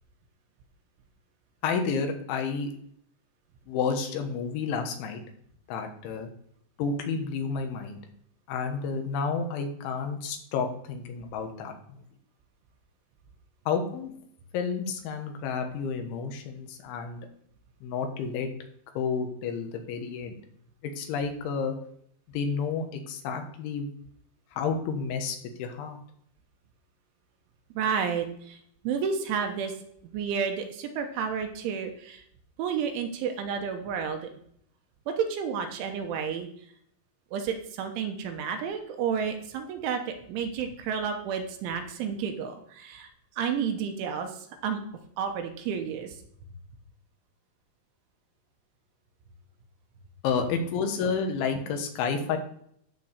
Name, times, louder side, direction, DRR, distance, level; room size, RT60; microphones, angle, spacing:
voice 1, 1.6-2.7 3.7-5.2 5.7-6.3 6.8-8.0 8.5-12.0 13.7-14.1 14.5-17.2 17.8-18.5 19.0-20.4 21.0-21.8 22.3-23.9 24.5-26.0 50.2-52.4, left 5 dB, 75° left, 4 dB, 3.5 m, -30 dB
voice 2, 27.8-28.6 28.8-29.7 30.1-32.2 32.6-34.2 35.2-36.5 37.3-40.0 40.3-43.1 43.4-44.3 44.6-44.8 45.2-46.1, right 7 dB, 80° right, 5 dB, 3.4 m, -31 dB
12.0 x 4.5 x 6.7 m, 0.69 s
omnidirectional pair, 5.6 m